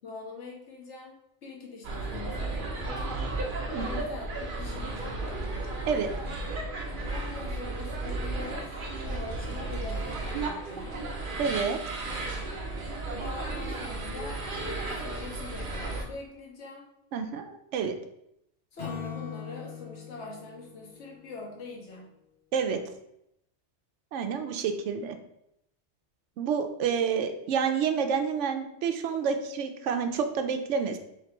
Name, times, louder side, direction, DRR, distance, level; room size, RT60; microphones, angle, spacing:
voice 1, 0.0-1.1 1.4-3.3 3.7-5.3 7.1-11.0 13.2-16.9 18.7-22.1, left 3 dB, 75° left, -1 dB, 1.3 m, -43 dB
sound 1, 1.8-16.0, right 2 dB, 50° right, 0.8 m, -34 dB
voice 2, 3.7-4.0 5.9-6.1 11.4-11.8 17.1-18.0 22.5-22.8 24.1-25.2 26.4-31.0, right 6 dB, 90° right, 7 dB, 0.9 m, -29 dB
Acoustic guitar / Strum, 18.8-22.1, left 7 dB, 55° left, 1.0 m, -42 dB
3.3 x 2.9 x 4.3 m, 0.80 s
omnidirectional pair, 1.2 m